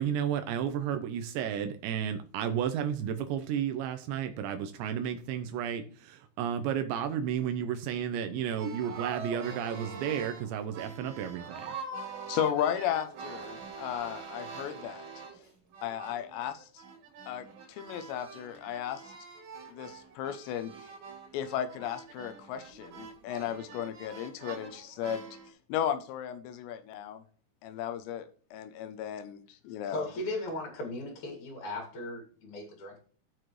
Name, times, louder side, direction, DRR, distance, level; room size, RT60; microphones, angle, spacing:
voice 1, 0.0-11.7, right 8 dB, 85° right, 7 dB, 2.7 m, -32 dB
sound 1, 8.5-15.5 15.7-25.5, right 5 dB, 65° right, 4.2 m, -44 dB
voice 2, 12.3-15.1 15.8-16.8 17.3-19.1 19.7-20.9 21.3-25.2 25.7-27.2 27.6-30.1, left 10 dB, 80° left, 10 dB, 2.6 m, -35 dB
voice 3, 29.8-33.0, left 1 dB, 45° left, 1 dB, 2.9 m, -37 dB
14.5 x 6.1 x 3.2 m, 0.43 s
omnidirectional pair, 5.6 m